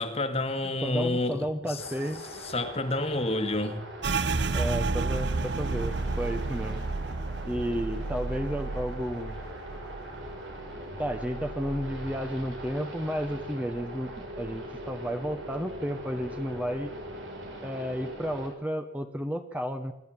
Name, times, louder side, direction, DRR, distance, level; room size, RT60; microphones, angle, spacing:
voice 1, 0.0-1.8 2.4-3.8, left 2 dB, 35° left, 8 dB, 1.8 m, -29 dB
voice 2, 0.8-2.2 4.5-6.8 7.4-9.4 11.0-16.9 17.6-19.9, equal, 10° right, 7 dB, 1.2 m, -32 dB
sound 1, 1.8-18.5, right 1 dB, 85° right, 6.2 m, -41 dB
sound 2, 4.0-13.4 13.7-15.0 15.3-15.8 16.2-16.8, right 3 dB, 65° right, 1.0 m, -33 dB
25.5 x 12.0 x 8.9 m, 0.83 s
head